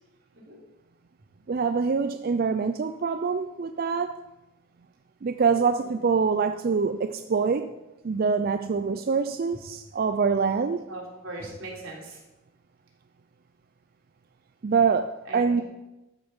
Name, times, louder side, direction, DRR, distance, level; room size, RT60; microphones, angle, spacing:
voice 1, 1.5-4.2 5.2-7.7 8.0-10.8 14.6-15.6, right 5 dB, 45° right, 9 dB, 0.4 m, -25 dB
voice 2, 5.4-5.9 10.9-12.2 15.3-15.6, right 1 dB, 85° right, -3 dB, 3.5 m, -40 dB
13.0 x 6.7 x 5.4 m, 1.0 s
head